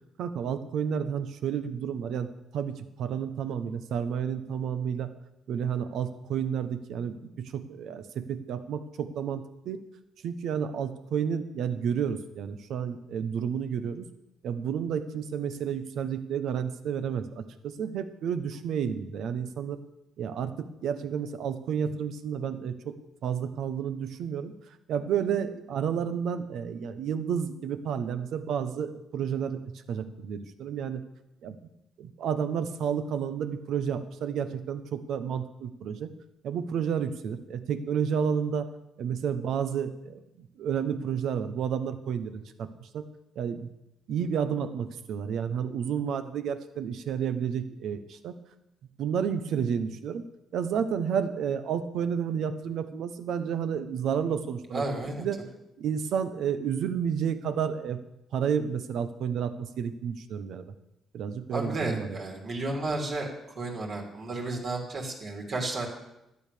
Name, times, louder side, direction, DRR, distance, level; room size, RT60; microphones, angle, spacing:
voice 1, 0.2-5.1 5.5-9.8 10.2-14.1 14.4-19.8 20.2-22.9 23.2-24.5 24.9-29.6 29.9-31.0 31.4-31.6 32.0-36.1 36.4-38.7 39.0-43.0 43.3-43.7 44.1-48.3 49.0-50.2 50.5-55.4 55.8-58.0 58.3-60.6 61.1-62.2, right 7 dB, 75° right, 10 dB, 1.1 m, -31 dB
voice 2, 54.7-55.2 61.5-63.3 63.6-65.9, right 2 dB, 55° right, 0 dB, 3.1 m, -32 dB
12.5 x 8.8 x 6.8 m, 0.88 s
cardioid pair, 90°, 0 cm